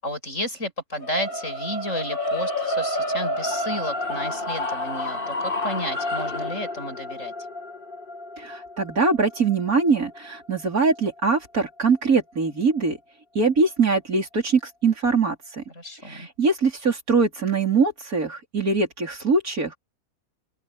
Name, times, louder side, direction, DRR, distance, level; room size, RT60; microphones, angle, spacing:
voice 1, 0.0-7.3 15.7-16.3, left 1 dB, 60° left, 7.9 m, -32 dB
sound 1, 1.0-11.2, left 1 dB, 40° left, 2.4 m, -30 dB
voice 2, 8.4-13.0 13.3-15.6 16.0-19.8, right 4 dB, 80° right, 4.7 m, -22 dB
open air
omnidirectional pair, 1.5 m